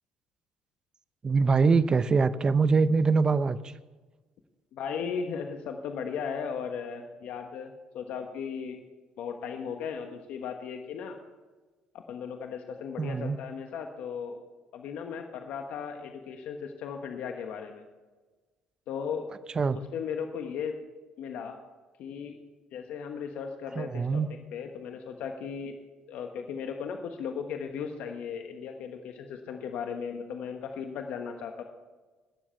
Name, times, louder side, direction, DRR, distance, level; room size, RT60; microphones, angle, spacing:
voice 1, 1.2-3.7 13.0-13.4 19.6-19.8 23.8-24.3, right 4 dB, 30° right, 14 dB, 0.7 m, -24 dB
voice 2, 4.7-8.8 9.2-11.2 11.9-14.4 14.7-17.8 18.9-19.3 19.7-20.8 21.2-21.6 22.0-22.4 22.7-25.7 26.1-31.6, left 6 dB, 70° left, 5 dB, 1.2 m, -36 dB
20.5 x 7.4 x 4.5 m, 1.3 s
supercardioid pair, 75°, 2 cm